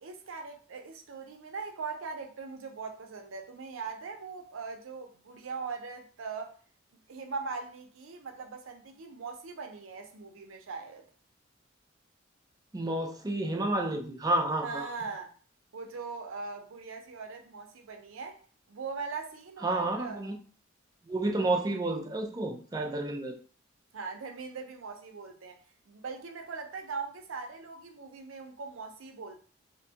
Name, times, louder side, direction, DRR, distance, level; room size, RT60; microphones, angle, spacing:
voice 1, 0.0-6.5 7.1-11.0 14.6-15.3 15.7-18.4 18.7-20.2 23.9-29.4, right 4 dB, 90° right, 0.5 m, -40 dB
voice 2, 12.7-14.9 19.6-20.4 21.1-23.4, right 2 dB, 20° right, 0.4 m, -30 dB
2.5 x 2.2 x 2.7 m
head